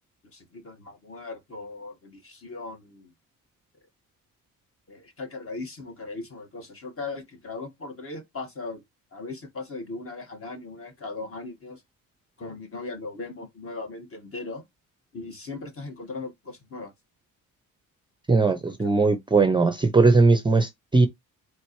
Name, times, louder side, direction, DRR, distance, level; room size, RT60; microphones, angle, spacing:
voice 1, 0.3-3.1 4.9-8.8 9.1-11.8 12.4-14.6 15.1-16.9 18.6-18.9, left 3 dB, 35° left, 1.5 m, -38 dB
voice 2, 18.3-21.1, right 3 dB, 15° right, 0.5 m, -19 dB
4.3 x 3.1 x 3.0 m
cardioid pair, 85°, 36 cm